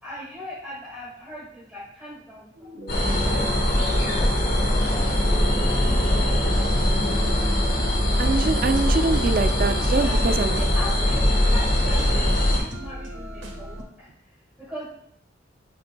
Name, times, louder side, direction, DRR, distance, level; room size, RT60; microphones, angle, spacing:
voice 1, 0.0-5.9 9.9-14.9, equal, 5° right, -9 dB, 1.8 m, -40 dB
sound 1, 2.6-13.8, equal, 85° right, 1.4 m, -39 dB
sound 2, 2.9-12.6, left 1 dB, 55° left, 1.5 m, -21 dB
voice 2, 8.2-10.6, right 3 dB, 50° right, 9 dB, 0.4 m, -24 dB
9.5 x 5.2 x 2.3 m, 0.71 s
head